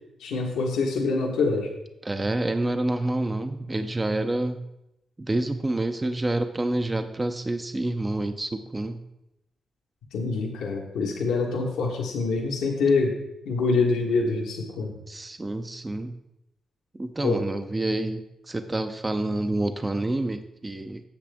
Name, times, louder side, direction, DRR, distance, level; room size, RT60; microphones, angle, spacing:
voice 1, 0.2-1.7 10.1-13.2 13.4-14.9 17.2-17.4, left 4 dB, 90° left, 0 dB, 1.4 m, -25 dB
voice 2, 2.0-4.6 5.2-9.0 15.1-16.2 16.9-21.0, right 2 dB, 25° right, 8 dB, 0.5 m, -28 dB
8.7 x 7.3 x 3.5 m, 0.88 s
cardioid pair, 65°, 0 cm